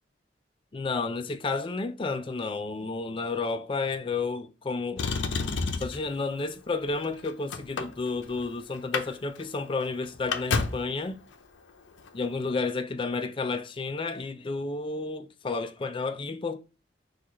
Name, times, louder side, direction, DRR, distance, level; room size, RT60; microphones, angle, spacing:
voice 1, 0.7-5.1 5.8-11.2 12.1-16.6, left 3 dB, 30° left, 0.4 m, -31 dB
Motor vehicle (road), 5.0-6.1 6.9-8.4 8.8-9.1 9.4-9.5 9.8-10.9 12.0-12.1, left 4 dB, 85° left, 0.6 m, -30 dB
4.7 x 2.4 x 4.1 m
head